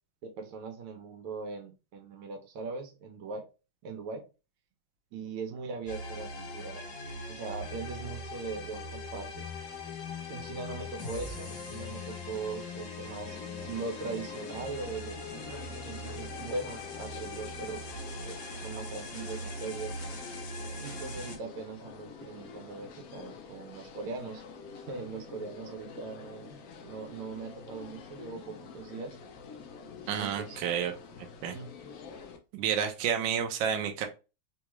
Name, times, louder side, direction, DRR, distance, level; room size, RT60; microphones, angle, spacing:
voice 1, 0.2-3.5 3.8-4.2 5.1-6.8 7.3-9.5 10.3-17.9 18.2-20.0 20.8-24.4 24.7-26.5 26.8-29.2 30.2-30.7 31.5-31.7, right 4 dB, 85° right, 4 dB, 1.7 m, -40 dB
sound 1, 5.9-21.4, left 2 dB, 55° left, 1.0 m, -40 dB
sound 2, 13.3-32.4, left 5 dB, 85° left, 0.8 m, -48 dB
voice 2, 30.1-30.9 31.4-31.6 32.5-34.1, right 8 dB, 70° right, 4 dB, 1.2 m, -30 dB
4.0 x 2.3 x 3.0 m, 0.30 s
omnidirectional pair, 2.3 m